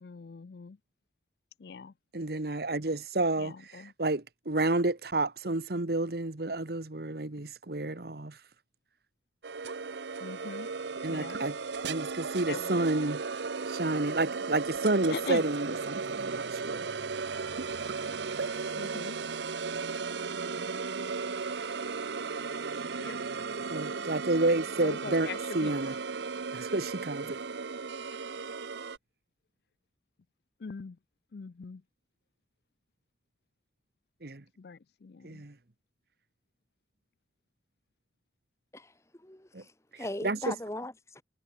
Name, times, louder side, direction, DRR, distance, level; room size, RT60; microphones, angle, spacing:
voice 1, 0.0-0.8 1.6-1.9 3.4-3.9 10.2-10.7 11.1-11.4 12.5-12.7 15.1-15.4 18.7-19.2 23.0-23.2 24.8-25.7 30.6-31.0 31.3-31.8 34.6-35.4, left 5 dB, 60° left, 0.4 m, -41 dB
voice 2, 2.1-8.4 11.0-11.6 11.8-13.2 13.7-16.9 23.7-25.9 26.5-27.4 34.2-34.4 35.2-35.5 39.5-39.6 39.9-40.5, right 2 dB, 55° right, 1.3 m, -30 dB
sound 1, 9.4-29.0, right 4 dB, 70° right, 0.7 m, -35 dB
voice 3, 38.7-41.2, left 1 dB, 15° left, 1.3 m, -40 dB
head